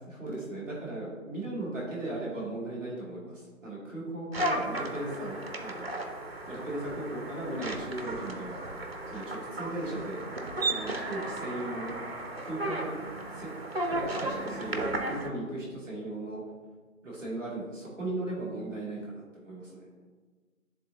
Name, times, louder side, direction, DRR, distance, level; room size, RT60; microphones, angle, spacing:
voice 1, 0.1-6.0 6.5-8.6 9.1-10.2 10.6-11.9 12.4-12.9 13.3-13.5 13.8-16.4 17.0-19.9, right 2 dB, 5° left, -12 dB, 1.2 m, -37 dB
sound 1, 4.3-15.3, right 1 dB, 45° right, 0.6 m, -35 dB
9.5 x 3.8 x 2.7 m, 1.4 s
figure-of-eight pair, 160°, 42 cm